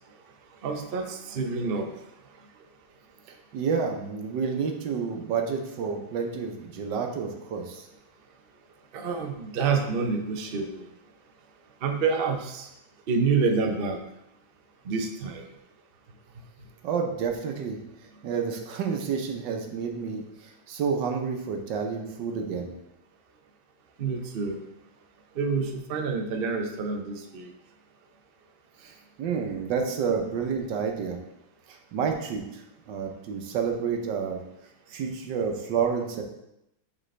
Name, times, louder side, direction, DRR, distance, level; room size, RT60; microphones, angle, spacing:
voice 1, 0.6-1.9 8.9-10.9 11.8-12.7 13.1-14.0 14.8-15.4 24.0-24.6 25.4-27.5, right 4 dB, 85° right, 4 dB, 0.5 m, -28 dB
voice 2, 3.5-7.9 16.8-17.8 18.2-22.7 28.8-31.2 31.7-32.6 32.9-34.4 34.9-36.2, right 6 dB, 70° right, 3 dB, 1.5 m, -29 dB
7.5 x 5.0 x 3.3 m, 0.85 s
omnidirectional pair, 2.1 m